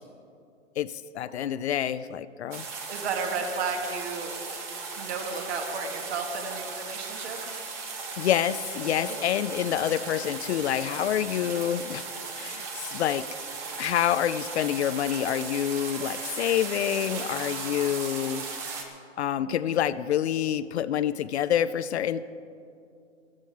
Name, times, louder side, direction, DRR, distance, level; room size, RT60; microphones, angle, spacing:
voice 1, 0.8-2.6 8.2-12.0 12.4-13.3 13.8-18.4 19.2-22.3, left 10 dB, 60° left, 14 dB, 0.5 m, -27 dB
sound 1, 2.5-18.8, right 4 dB, 10° right, 0.4 m, -37 dB
voice 2, 2.9-4.3 5.0-7.4 9.0-9.1 19.4-19.6, right 4 dB, 55° right, 3 dB, 1.8 m, -33 dB
14.0 x 14.0 x 4.5 m, 2.5 s
hypercardioid pair, 140°, 38 cm